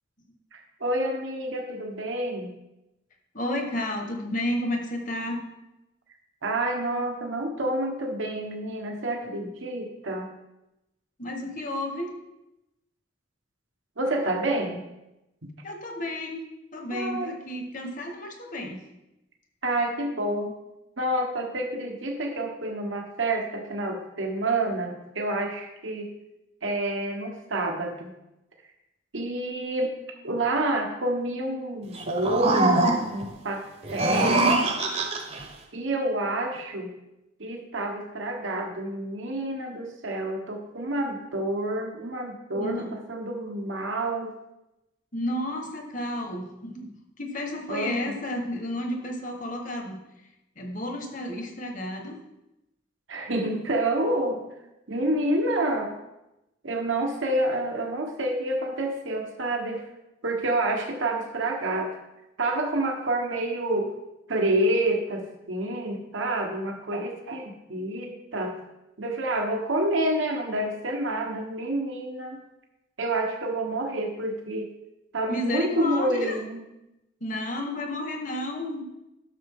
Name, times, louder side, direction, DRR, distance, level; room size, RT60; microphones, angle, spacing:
voice 1, 0.5-2.5 6.4-10.3 14.0-14.8 15.4-15.5 16.9-17.3 19.6-20.6 21.0-26.1 26.6-28.1 29.1-30.0 30.2-33.6 33.9-34.5 35.7-36.9 37.4-44.3 47.7-48.1 53.1-54.5 54.9-55.9 56.6-59.8 60.2-62.0 62.4-63.9 64.3-68.5 69.0-72.4 73.0-74.7 75.1-76.6, right 1 dB, 80° right, 2 dB, 1.2 m, -28 dB
voice 2, 3.3-5.4 11.2-12.1 15.6-16.4 16.7-18.8 42.6-42.9 45.1-50.0 50.6-52.2 75.3-76.4 77.2-78.8, left 1 dB, 40° left, 3 dB, 1.3 m, -32 dB
sound 1, 31.9-33.3 33.8-35.4, right 2 dB, 35° right, 0.9 m, -23 dB
11.5 x 6.4 x 3.6 m, 0.92 s
head